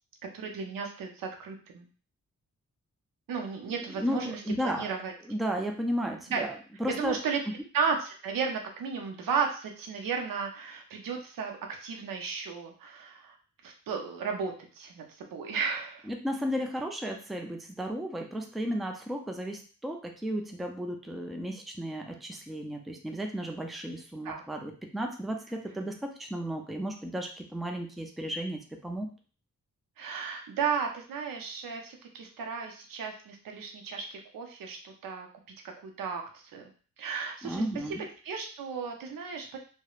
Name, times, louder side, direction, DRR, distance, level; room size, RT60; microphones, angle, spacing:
voice 1, 0.3-1.9 3.3-4.4 4.8-5.1 6.3-6.4 6.9-7.4 7.7-13.4 13.6-16.1 24.2-24.4 30.0-35.3 35.8-36.7 37.0-37.6 38.2-39.6, right 6 dB, 90° right, 3 dB, 0.6 m, -34 dB
voice 2, 4.0-4.9 5.3-6.5 6.8-7.2 16.1-29.1 37.4-38.0, equal, ahead, 3 dB, 0.3 m, -34 dB
2.9 x 2.1 x 2.3 m, 0.40 s
cardioid pair, 70°, 33 cm